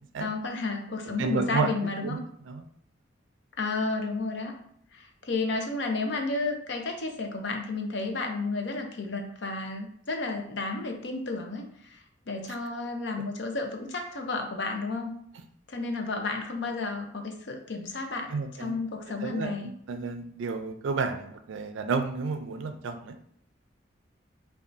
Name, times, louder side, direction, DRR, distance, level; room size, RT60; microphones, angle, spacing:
voice 1, 0.2-2.2 3.6-4.5 4.9-15.1 15.7-19.7, left 3 dB, 70° left, 3 dB, 0.6 m, -32 dB
voice 2, 1.0-1.7 2.0-2.7 18.3-18.8 19.2-23.3, right 4 dB, 90° right, 8 dB, 0.4 m, -31 dB
5.2 x 2.4 x 2.6 m, 0.65 s
head